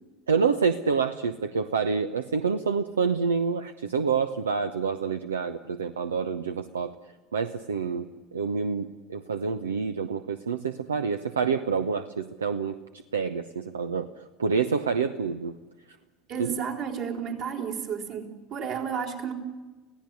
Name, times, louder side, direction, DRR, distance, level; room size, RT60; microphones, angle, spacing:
voice 1, 0.3-6.9 7.3-12.8 13.1-14.1 14.4-15.5 16.4-16.5, right 5 dB, 80° right, 10 dB, 0.8 m, -27 dB
voice 2, 16.3-19.3, right 7 dB, 55° right, 1 dB, 4.7 m, -32 dB
25.5 x 17.0 x 9.8 m, 1.2 s
figure-of-eight pair, 70°, 0 cm